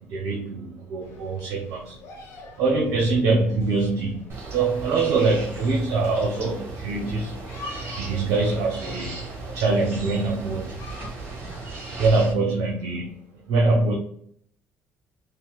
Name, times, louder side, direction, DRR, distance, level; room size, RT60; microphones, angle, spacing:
voice 1, 0.1-2.0 2.6-7.4 7.7-9.2 9.5-10.8 12.0-13.9, right 3 dB, 75° right, 0 dB, 0.7 m, -24 dB
sound 1, 1.0-12.4, left 3 dB, 80° left, 1.2 m, -45 dB
sound 2, 4.3-12.3, right 3 dB, 55° right, 1.3 m, -36 dB
5.5 x 2.1 x 2.3 m, 0.65 s
cardioid pair, 85°, 5 cm